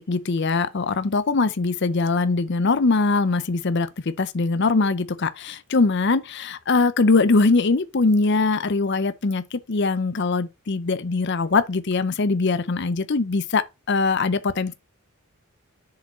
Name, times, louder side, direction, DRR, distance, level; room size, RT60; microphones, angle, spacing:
voice 1, 0.1-14.7, left 3 dB, 55° left, 0.6 m, -22 dB
7.2 x 4.9 x 4.2 m
head